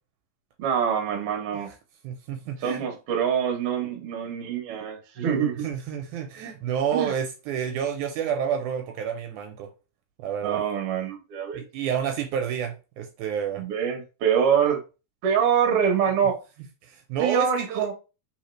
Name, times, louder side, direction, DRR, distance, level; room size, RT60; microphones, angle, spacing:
voice 1, 0.6-1.7 2.6-5.6 6.9-7.1 10.4-11.7 13.6-14.8 15.2-16.4 17.2-17.9, right 7 dB, 60° right, 1.6 m, -25 dB
voice 2, 2.0-2.9 5.6-9.7 10.2-10.6 11.5-13.6 16.8-17.9, right 8 dB, 80° right, 2.0 m, -29 dB
4.4 x 3.6 x 3.1 m
omnidirectional pair, 3.7 m